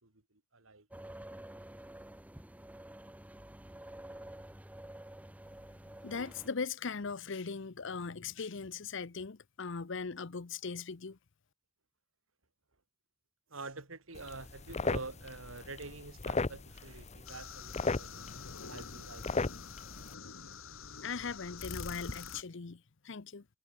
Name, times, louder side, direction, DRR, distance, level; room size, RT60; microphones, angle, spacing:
voice 1, 0.0-0.9 13.5-18.3 18.7-19.6, right 3 dB, 85° right, 3.6 m, -47 dB
sound 1, 0.9-6.5, right 1 dB, 5° right, 0.7 m, -49 dB
voice 2, 6.0-11.2 21.0-23.4, left 5 dB, 65° left, 0.8 m, -39 dB
sound 2, 14.1-20.1, left 3 dB, 35° left, 0.9 m, -37 dB
sound 3, 17.3-22.4, left 5 dB, 90° left, 2.0 m, -46 dB
head